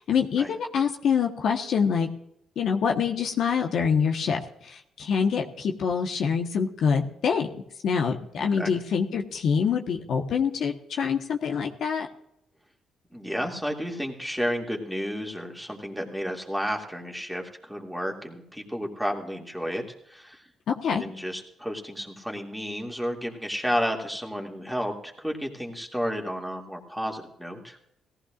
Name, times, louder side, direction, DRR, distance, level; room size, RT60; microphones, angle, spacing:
voice 1, 0.0-2.1 2.6-7.5 7.8-12.1 20.7-21.0, left 6 dB, 65° left, 3 dB, 1.2 m, -25 dB
voice 2, 8.4-8.7 13.1-20.4 21.0-27.8, equal, ahead, 0 dB, 2.4 m, -32 dB
18.0 x 15.0 x 2.5 m, 0.77 s
cardioid pair, 90°, 0 cm